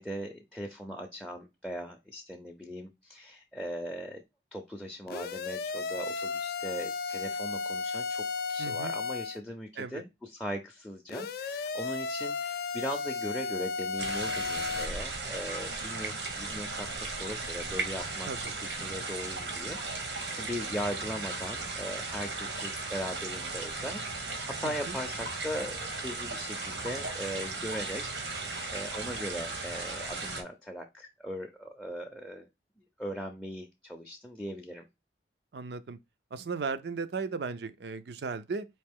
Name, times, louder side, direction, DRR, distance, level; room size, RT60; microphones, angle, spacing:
voice 1, 0.0-4.2 4.5-32.5 33.0-34.8, equal, 5° left, 0.5 m, -39 dB
sound 1, 5.1-9.4 11.1-14.9, left 4 dB, 55° left, 0.4 m, -34 dB
voice 2, 8.6-8.9 9.8-10.0 18.3-18.4 24.6-24.9 35.5-36.0 36.3-38.7, right 4 dB, 70° right, 0.5 m, -36 dB
sound 2, 14.0-30.4, right 3 dB, 90° right, 1.2 m, -36 dB
4.3 x 2.8 x 3.5 m
head